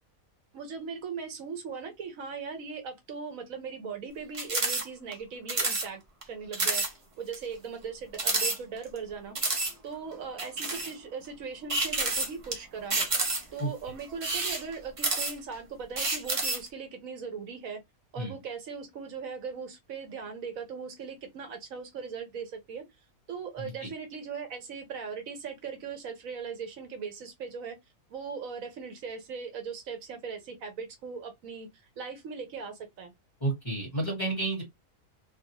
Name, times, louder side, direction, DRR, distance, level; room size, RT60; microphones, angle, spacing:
voice 1, 0.5-6.0 6.3-6.8 7.2-9.4 9.8-13.1 13.5-17.8 18.1-22.8 23.3-27.8 28.1-31.7 32.0-33.1, right 5 dB, 70° right, 1.1 m, -39 dB
sound 1, 4.3-4.8 5.1-5.2 5.5-5.9 6.2-6.3 6.5-6.9 7.3-7.4 8.1-9.0 9.4-9.7 10.4-10.9 11.7-12.5 12.9-13.6 14.1-15.5 16.0-16.7, right 3 dB, 35° right, 0.5 m, -29 dB
voice 2, 23.6-23.9 33.4-34.6, right 2 dB, 20° left, 1.5 m, -31 dB
2.7 x 2.4 x 2.8 m
omnidirectional pair, 1.5 m